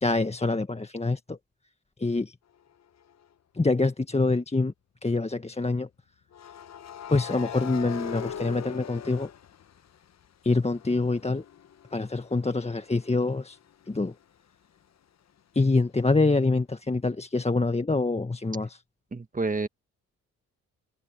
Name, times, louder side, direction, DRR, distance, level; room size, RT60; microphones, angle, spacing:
voice 1, 0.0-1.4 2.0-2.3 3.5-4.7 5.0-5.9 7.1-9.3 10.4-11.4 11.9-13.6 13.9-14.1 15.5-18.8, left 3 dB, 20° left, 1.5 m, -25 dB
sound 1, 3.0-3.2 6.3-10.2 10.6-14.2, left 8 dB, 50° left, 1.0 m, -41 dB
voice 2, 19.1-19.7, right 3 dB, 20° right, 1.7 m, -29 dB
hypercardioid pair, 45°, 35 cm